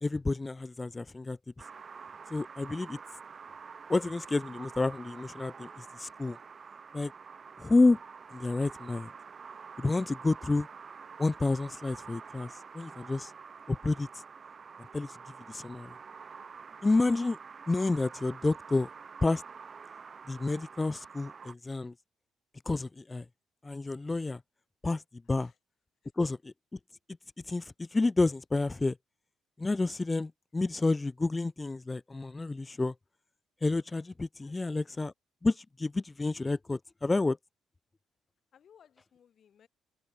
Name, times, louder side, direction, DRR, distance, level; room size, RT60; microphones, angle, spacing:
voice 1, 0.0-1.7 2.3-3.0 3.9-6.4 6.9-7.1 7.6-8.0 8.3-9.1 9.8-10.7 11.2-13.3 13.7-14.2 14.9-15.2 15.5-15.9 16.8-17.4 17.7-18.9 19.2-19.4 20.3-21.9 22.7-23.2 23.6-24.4 24.8-25.0 25.3-25.5 26.2-26.8 27.4-29.0 29.6-32.9 33.6-35.1 35.4-37.4, left 3 dB, 20° left, 0.7 m, -29 dB
sound 1, 1.6-21.5, right 5 dB, 40° right, 4.4 m, -48 dB
voice 2, 25.2-25.6 26.0-26.1 34.4-34.9 38.5-39.7, left 8 dB, 60° left, 7.1 m, -62 dB
open air
cardioid pair, 80°, 0 cm